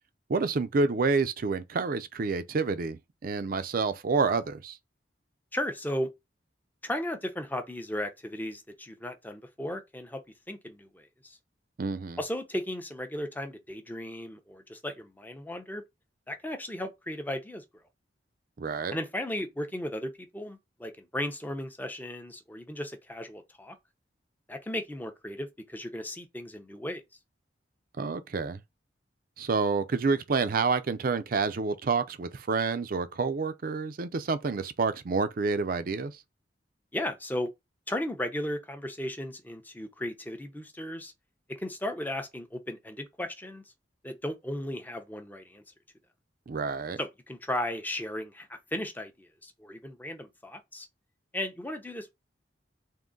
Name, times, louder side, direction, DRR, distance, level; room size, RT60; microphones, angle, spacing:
voice 1, 0.3-4.8 11.8-12.2 18.6-19.0 28.0-28.6 29.4-36.1 46.5-47.0, right 4 dB, 50° right, 0.5 m, -28 dB
voice 2, 5.5-6.1 6.8-10.2 10.5-11.4 12.2-15.8 16.3-17.6 18.9-23.8 24.5-27.0 36.9-37.5 37.9-41.1 41.5-43.6 44.0-45.6 47.0-50.9 51.3-52.1, left 1 dB, 10° left, 0.6 m, -35 dB
3.7 x 2.6 x 3.8 m
head